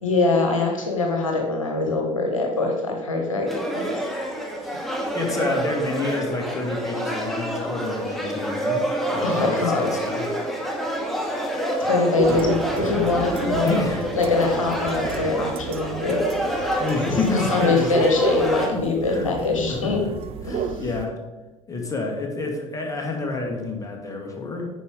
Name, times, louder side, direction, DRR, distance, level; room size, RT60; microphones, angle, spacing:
voice 1, 0.0-4.0 9.2-9.9 11.8-13.8 14.1-16.2 16.5-16.7 17.3-20.0 20.4-20.8, left 3 dB, 75° left, 2 dB, 1.3 m, -23 dB
sound 1, 3.5-18.7, right 1 dB, ahead, 1.9 m, -27 dB
voice 2, 5.1-10.3 12.3-13.1 13.5-14.1 16.8-18.2 18.7-20.1 20.4-21.2 21.7-24.7, left 3 dB, 20° left, 1 dB, 2.1 m, -29 dB
sound 2, 12.2-21.1, right 9 dB, 35° right, 0.4 m, -33 dB
9.5 x 5.3 x 5.0 m, 1.1 s
figure-of-eight pair, 65°, 17 cm